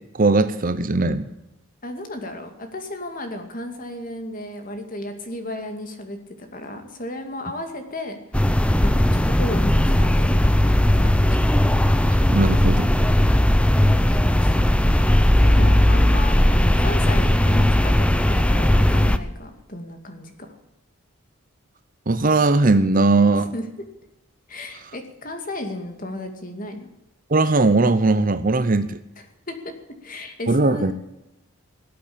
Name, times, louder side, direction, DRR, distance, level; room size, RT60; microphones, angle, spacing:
voice 1, 0.1-1.3 12.1-12.9 22.1-23.5 27.3-29.0 30.5-30.9, right 3 dB, 40° right, 12 dB, 0.8 m, -19 dB
voice 2, 1.8-8.2 8.8-11.5 14.2-14.7 15.3-20.6 23.5-23.6 24.5-26.9 29.5-29.7 30.0-30.9, left 1 dB, 40° left, 5 dB, 2.4 m, -34 dB
sound 1, 8.3-19.2, left 1 dB, 5° left, 0.6 m, -17 dB
18.5 x 8.5 x 8.7 m, 0.92 s
head